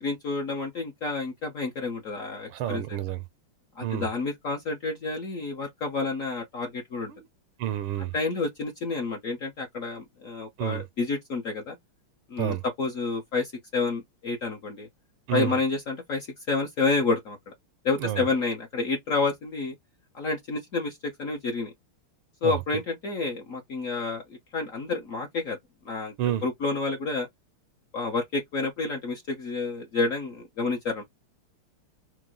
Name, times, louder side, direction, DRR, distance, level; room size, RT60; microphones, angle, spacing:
voice 1, 0.0-2.8 3.8-7.1 8.1-11.8 12.3-14.9 15.3-17.5 17.8-19.7 20.1-21.7 22.4-24.2 24.5-25.6 25.8-26.1 26.4-27.3 27.9-31.0, left 3 dB, 55° left, 0.9 m, -29 dB
voice 2, 2.5-3.2 3.8-4.1 7.1-7.3 7.6-8.1 10.6-10.8 12.4-12.6 15.3-15.5 18.0-18.3 22.4-22.6 26.2-26.4, right 12 dB, 80° right, 1.5 m, -29 dB
4.7 x 2.1 x 3.8 m
omnidirectional pair, 2.4 m